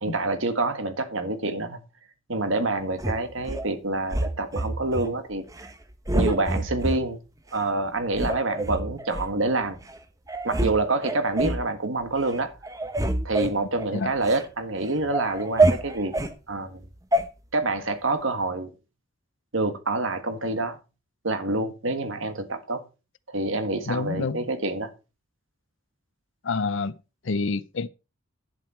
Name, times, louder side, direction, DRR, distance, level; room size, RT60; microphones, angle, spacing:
voice 1, 0.0-1.8 2.3-5.7 6.1-7.2 7.5-9.8 10.4-12.5 13.2-16.1 16.5-16.8 17.5-18.7 19.5-20.8 21.2-22.8 23.3-24.9, right 2 dB, 70° right, 1.7 m, -27 dB
sound 1, 3.0-3.7 4.1-5.1 5.5-5.7 6.1-7.0 7.5-7.6 8.1-9.3 9.9-10.0 10.3-10.7 11.0-11.7 12.1-12.4 12.6-14.4 14.8-16.3 17.1-17.2, right 2 dB, 15° right, 0.9 m, -26 dB
voice 2, 23.9-24.4 26.4-27.0 27.2-27.9, left 4 dB, 65° left, 0.6 m, -27 dB
10.5 x 7.7 x 4.4 m
head